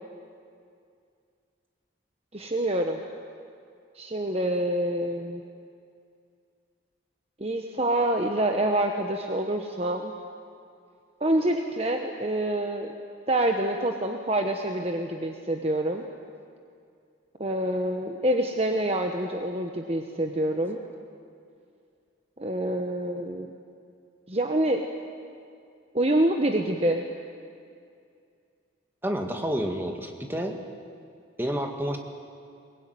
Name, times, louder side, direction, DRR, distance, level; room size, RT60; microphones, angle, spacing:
voice 1, 2.3-3.0 3.9-5.4 7.4-10.1 11.2-12.9 13.3-16.0 17.4-20.8 22.4-23.5 24.3-24.8 25.9-27.0, right 1 dB, 30° right, 4 dB, 1.1 m, -26 dB
voice 2, 29.0-30.6 31.4-32.0, equal, 10° right, 3 dB, 1.9 m, -29 dB
22.0 x 21.0 x 9.5 m, 2.3 s
head